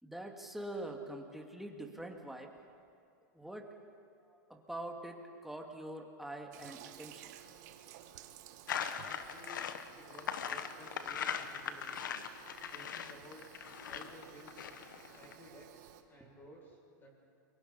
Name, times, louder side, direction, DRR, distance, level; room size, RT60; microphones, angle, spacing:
voice 1, 0.0-2.5 3.3-3.7 4.1-7.3, right 1 dB, ahead, 2 dB, 2.3 m, -44 dB
Toilet flush, 6.5-16.0, right 11 dB, 60° right, 1.5 m, -55 dB
sound 1, 8.7-15.3, left 8 dB, 85° left, 1.3 m, -40 dB
voice 2, 8.9-9.6 10.0-12.1 12.7-13.5 13.9-14.6 15.2-17.1, equal, 20° left, -1 dB, 7.2 m, -55 dB
29.0 x 23.5 x 4.3 m, 2.4 s
hypercardioid pair, 125°, 10 cm